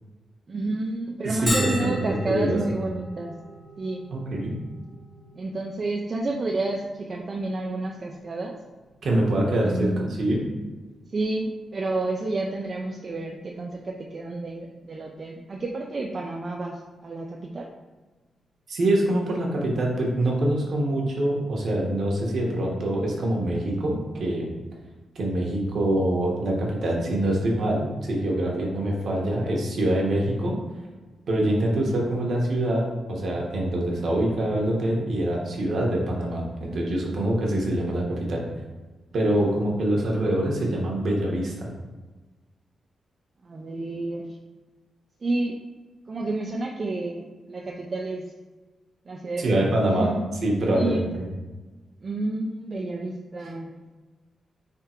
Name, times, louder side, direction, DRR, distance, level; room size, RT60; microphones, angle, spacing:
voice 1, 0.5-3.3 3.8-4.1 5.4-8.6 9.6-10.1 11.1-17.7 43.4-44.4 45.2-45.6 46.1-48.3 49.1-50.1 50.7-51.0 52.0-53.8, right 2 dB, 35° right, 1 dB, 0.3 m, -30 dB
voice 2, 1.2-1.9 2.3-2.6 4.1-4.6 9.0-10.4 18.7-24.5 25.1-30.5 31.3-38.4 39.1-41.7 49.4-50.1 50.4-51.1, right 1 dB, 55° right, -2 dB, 1.0 m, -25 dB
Bell, 1.5-16.9, equal, 10° left, 0.9 m, -41 dB
3.6 x 3.3 x 4.3 m, 1.3 s
wide cardioid pair, 160°, 0 cm